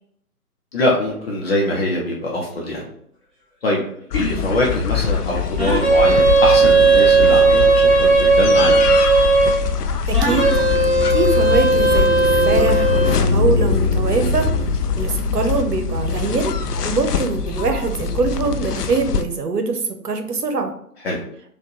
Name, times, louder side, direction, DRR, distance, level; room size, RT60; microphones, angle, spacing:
voice 1, 0.7-2.9 3.6-3.8 4.1-8.8 21.0-21.2, left 1 dB, 40° left, -3 dB, 0.8 m, -22 dB
sound 1, 4.1-19.2, left 8 dB, 80° left, 0.6 m, -24 dB
sound 2, 5.6-9.6 10.1-13.2, right 3 dB, 10° right, 1.4 m, -15 dB
voice 2, 10.1-10.5 11.1-14.5 15.0-16.5 16.8-20.7, right 3 dB, 90° right, 6 dB, 0.8 m, -23 dB
sound 3, 10.2-18.6, left 1 dB, 35° right, 1.3 m, -24 dB
4.3 x 2.5 x 3.0 m, 0.67 s
figure-of-eight pair, 135°, 46 cm